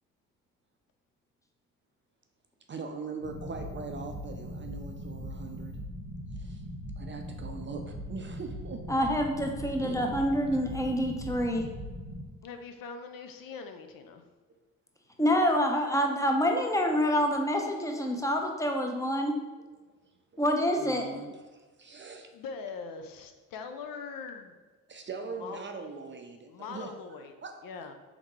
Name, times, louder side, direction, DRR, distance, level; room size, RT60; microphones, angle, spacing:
voice 1, 2.7-5.7 6.3-6.6 7.0-8.8 9.8-10.0 20.8-22.3 24.9-27.6, right 4 dB, 30° right, 4 dB, 0.5 m, -41 dB
sound 1, 3.2-12.2, equal, 90° right, 0.9 m, -40 dB
voice 2, 8.9-11.7 15.2-19.4 20.4-21.2, equal, 10° left, 2 dB, 0.7 m, -27 dB
voice 3, 12.4-14.2 22.3-24.6 25.4-25.7 26.5-27.3 27.6-27.9, left 5 dB, 60° left, 6 dB, 0.6 m, -42 dB
3.5 x 3.5 x 3.1 m, 1.3 s
hypercardioid pair, 50°, 38 cm